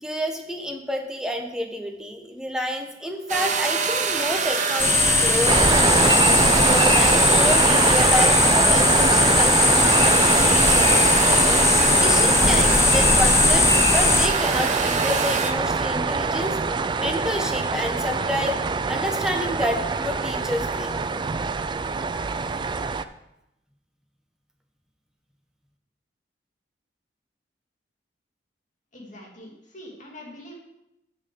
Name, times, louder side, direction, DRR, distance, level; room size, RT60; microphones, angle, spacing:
voice 1, 0.0-5.6 6.6-11.0 12.0-16.6 17.0-21.0, equal, 5° right, 2 dB, 1.1 m, -29 dB
sound 1, 3.3-15.5, right 5 dB, 45° right, 0.9 m, -27 dB
sound 2, 4.8-14.3, left 3 dB, 15° left, 0.7 m, -19 dB
sound 3, 5.5-23.0, right 4 dB, 25° right, 0.3 m, -23 dB
voice 2, 28.9-30.5, left 1 dB, 45° left, -2 dB, 2.6 m, -43 dB
7.0 x 6.7 x 6.9 m, 0.87 s
head